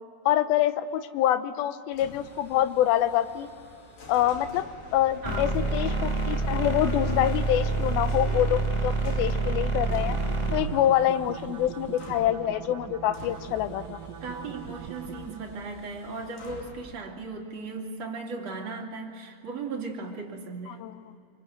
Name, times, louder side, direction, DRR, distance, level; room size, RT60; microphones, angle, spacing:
voice 1, 0.3-3.5 4.1-4.6 4.9-10.2 10.5-14.0 20.7-21.0, left 12 dB, 75° left, 11 dB, 2.6 m, -26 dB
sound 1, 1.9-16.9, left 3 dB, 55° left, 4.4 m, -47 dB
sound 2, 5.2-10.6, right 3 dB, 25° left, 0.9 m, -27 dB
voice 2, 5.2-5.5 14.2-20.8, right 3 dB, 45° right, 0 dB, 3.3 m, -37 dB
sound 3, 9.8-15.6, right 11 dB, 75° right, 2.2 m, -41 dB
26.5 x 25.0 x 8.0 m, 2.5 s
omnidirectional pair, 4.8 m